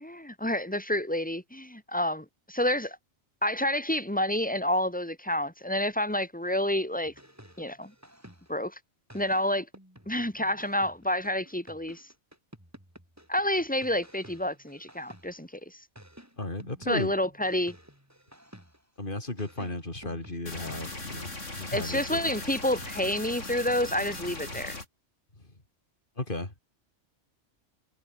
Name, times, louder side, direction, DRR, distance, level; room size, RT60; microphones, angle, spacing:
voice 1, 0.0-3.0 3.4-7.1 7.6-7.9 8.5-8.8 9.1-9.7 10.1-12.1 13.3-15.8 16.9-17.7 21.7-24.8, left 1 dB, 5° left, 3.1 m, -29 dB
sound 1, 7.0-8.7 9.1-15.5 16.0-19.0 19.4-22.4 22.8-24.9, equal, 15° right, 5.8 m, -53 dB
voice 2, 16.4-17.1 19.0-22.4 26.2-26.5, left 2 dB, 45° left, 4.5 m, -35 dB
sound 2, 20.5-24.9, left 2 dB, 90° left, 5.3 m, -39 dB
omnidirectional pair, 1.2 m